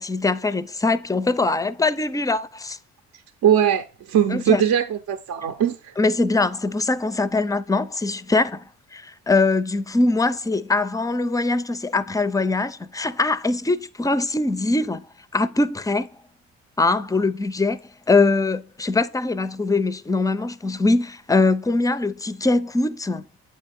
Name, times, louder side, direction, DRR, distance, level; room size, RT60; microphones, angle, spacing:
voice 1, 0.0-2.8 4.3-4.6 6.0-8.6 8.9-15.0 15.3-16.1 16.8-17.8 18.1-23.2, left 3 dB, 10° left, 0.4 m, -22 dB
voice 2, 3.4-5.9, right 9 dB, 65° right, 0.6 m, -20 dB
8.4 x 4.2 x 3.5 m
cardioid pair, 95°, 30 cm